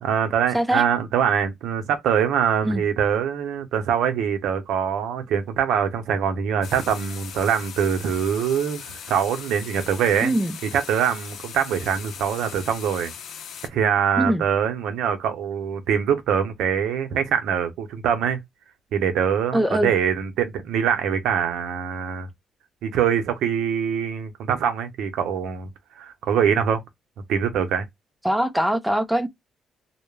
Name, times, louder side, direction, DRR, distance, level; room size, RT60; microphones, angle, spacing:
voice 1, 0.0-10.3 10.7-13.1 13.7-18.4 18.9-22.3 22.8-25.7 26.0-26.8 27.3-27.9, right 8 dB, 80° right, 0.6 m, -23 dB
sound 1, 6.6-13.7, left 8 dB, 75° left, 0.5 m, -39 dB
voice 2, 10.2-10.6 14.2-14.4 19.5-19.9 28.2-29.3, right 1 dB, 5° right, 0.4 m, -22 dB
2.2 x 2.0 x 3.1 m
cardioid pair, 90°, 0 cm